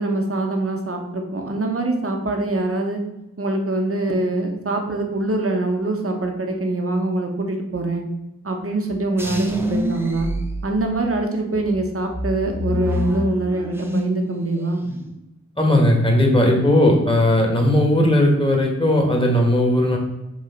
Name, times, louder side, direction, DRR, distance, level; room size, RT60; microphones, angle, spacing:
voice 1, 0.0-3.0 3.4-8.0 8.4-10.3 10.6-14.8, right 2 dB, 45° right, 3 dB, 1.3 m, -24 dB
sound 1, 9.2-11.2 11.7-14.3 14.6-15.1, equal, 10° right, 0.9 m, -26 dB
voice 2, 15.6-20.0, left 1 dB, 15° left, 1 dB, 1.9 m, -17 dB
6.6 x 3.7 x 5.2 m, 0.95 s
wide cardioid pair, 65°, 30 cm